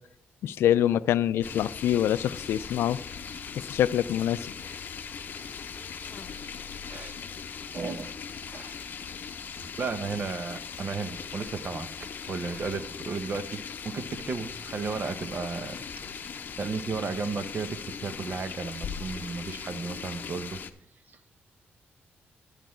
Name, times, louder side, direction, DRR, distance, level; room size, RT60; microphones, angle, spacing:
voice 1, 0.4-3.0 3.7-4.5, left 11 dB, 90° left, 16 dB, 0.3 m, -25 dB
sound 1, 1.4-20.7, left 6 dB, 50° left, 0.7 m, -39 dB
voice 2, 7.7-8.1 8.5-8.8 9.8-15.8 16.2-20.6, right 4 dB, 50° right, 10 dB, 0.9 m, -34 dB
10.0 x 9.3 x 4.4 m, 0.73 s
cardioid pair, 105°, 4 cm